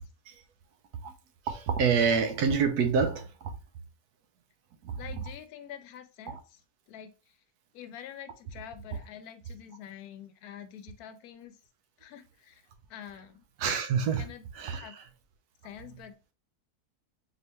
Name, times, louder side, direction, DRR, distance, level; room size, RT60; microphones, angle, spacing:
voice 1, 1.4-3.6 4.8-5.0 6.3-6.4 13.6-15.1, right 6 dB, 90° right, 1.2 m, -28 dB
voice 2, 5.0-6.6 6.9-7.4 7.7-11.6 12.0-12.6 12.9-13.4 14.2-15.0 15.6-16.2, left 10 dB, 80° left, 1.1 m, -46 dB
4.3 x 3.3 x 2.9 m
omnidirectional pair, 1.6 m